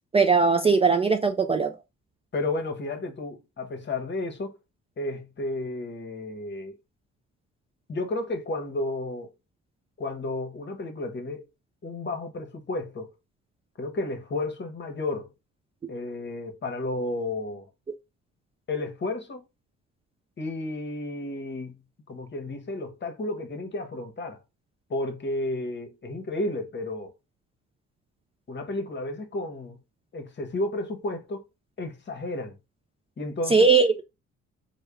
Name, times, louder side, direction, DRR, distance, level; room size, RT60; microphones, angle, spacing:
voice 1, 0.1-1.7 33.5-34.0, right 4 dB, 20° right, 0.3 m, -19 dB
voice 2, 2.3-4.6 5.0-6.7 7.9-9.3 10.0-11.5 11.8-13.1 13.8-15.3 15.9-17.7 18.7-19.5 20.4-21.8 22.1-24.4 24.9-27.1 28.5-29.8 30.1-31.4 31.8-32.6 33.2-33.7, left 2 dB, 35° left, 0.9 m, -32 dB
3.5 x 2.2 x 3.3 m
cardioid pair, 90°, 30 cm